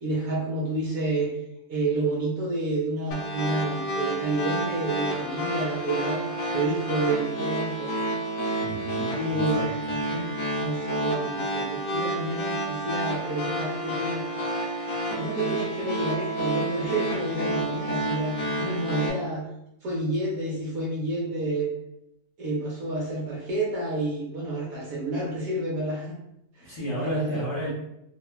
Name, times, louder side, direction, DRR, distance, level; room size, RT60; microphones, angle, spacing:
voice 1, 0.0-1.3 1.7-6.2 6.5-7.9 9.1-9.8 10.1-10.3 10.6-14.3 15.1-19.5 19.8-21.7 22.4-26.1 26.6-26.7 27.0-27.4, right 2 dB, 70° right, -4 dB, 0.9 m, -29 dB
sound 1, 3.1-19.1, right 1 dB, 65° left, 0.8 m, -30 dB
voice 2, 8.6-9.7 26.6-27.7, equal, 50° left, -8 dB, 1.1 m, -33 dB
3.0 x 2.2 x 2.2 m, 0.81 s
omnidirectional pair, 1.8 m